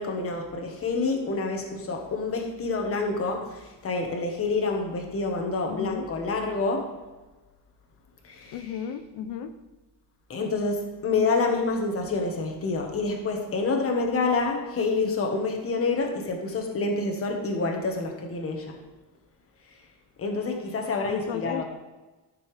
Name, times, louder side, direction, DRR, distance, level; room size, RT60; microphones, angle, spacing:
voice 1, 0.0-6.9 8.2-8.9 10.3-18.8 20.2-21.6, left 3 dB, 35° left, 2 dB, 1.5 m, -28 dB
voice 2, 5.7-6.1 8.5-9.5 21.1-21.6, left 8 dB, 85° left, 8 dB, 0.8 m, -34 dB
13.0 x 6.8 x 3.5 m, 1.2 s
cardioid pair, 165°, 41 cm